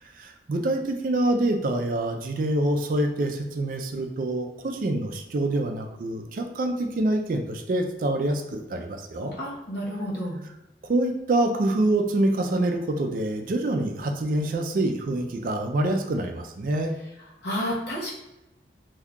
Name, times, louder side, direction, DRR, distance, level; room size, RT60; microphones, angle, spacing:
voice 1, 0.2-9.3 10.9-16.9, right 1 dB, 50° right, 4 dB, 0.4 m, -26 dB
voice 2, 9.3-10.4 17.4-18.1, equal, 70° left, -5 dB, 1.0 m, -30 dB
2.7 x 2.3 x 3.6 m, 0.95 s
head